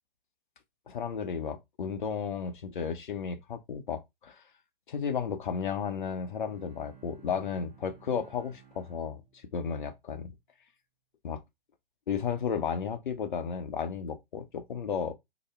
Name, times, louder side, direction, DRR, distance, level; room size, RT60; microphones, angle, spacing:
voice 1, 0.9-4.4 4.9-9.2 9.5-10.3 11.2-11.4 12.1-15.1, left 7 dB, 55° left, 0.7 m, -33 dB
Bowed string instrument, 5.8-9.9, right 7 dB, 15° right, 0.7 m, -57 dB
2.8 x 2.1 x 3.3 m
figure-of-eight pair, 125°, 29 cm